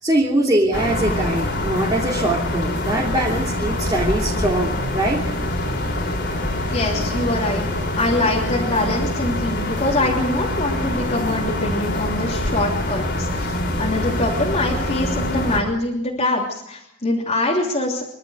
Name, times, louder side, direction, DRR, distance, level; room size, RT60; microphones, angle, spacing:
voice 1, 0.0-5.2, right 1 dB, 20° right, -3 dB, 3.0 m, -22 dB
sound 1, 0.7-15.6, left 1 dB, 55° left, 4.1 m, -24 dB
voice 2, 6.6-7.7 8.0-13.5 13.8-18.0, left 2 dB, 30° left, -3 dB, 3.2 m, -23 dB
26.0 x 12.5 x 8.0 m, 0.79 s
head